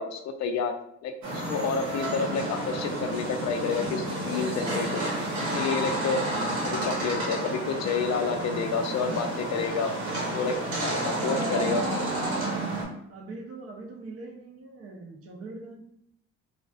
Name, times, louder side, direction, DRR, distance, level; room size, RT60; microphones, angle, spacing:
voice 1, 0.0-5.0 5.4-6.3 6.6-10.0 10.3-11.9, left 5 dB, 60° left, 6 dB, 0.4 m, -30 dB
sound 1, 1.2-12.8, right 1 dB, 70° right, 1.0 m, -30 dB
voice 2, 11.2-12.2 13.1-15.8, right 2 dB, 50° right, 2 dB, 0.6 m, -41 dB
2.4 x 2.4 x 2.3 m, 0.76 s
cardioid pair, 90°, 30 cm